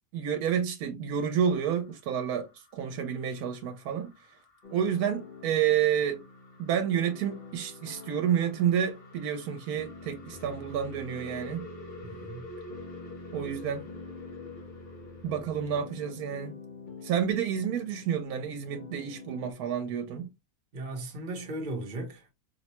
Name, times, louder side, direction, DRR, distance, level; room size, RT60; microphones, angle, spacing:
voice 1, 0.1-4.1 4.7-6.2 6.6-11.6 13.3-13.9 15.2-16.6 17.0-20.3, right 8 dB, 80° right, 1.1 m, -29 dB
sound 1, 1.2-16.3, left 2 dB, 75° left, 1.7 m, -50 dB
sound 2, 4.6-19.5, left 3 dB, 45° left, 0.7 m, -47 dB
voice 2, 12.0-12.5 20.7-22.4, right 2 dB, 40° right, 0.8 m, -37 dB
4.6 x 2.1 x 2.8 m
omnidirectional pair, 1.6 m